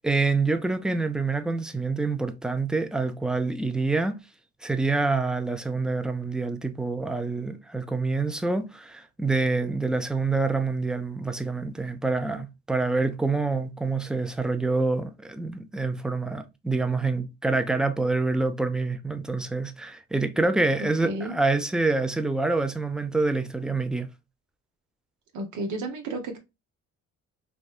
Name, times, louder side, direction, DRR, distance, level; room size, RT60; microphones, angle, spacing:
voice 1, 0.0-4.1 4.6-24.1, right 3 dB, ahead, 0.4 m, -26 dB
voice 2, 21.0-21.3 25.3-26.4, right 2 dB, 80° right, 1.0 m, -32 dB
3.4 x 2.6 x 2.4 m
cardioid pair, 90°, 30 cm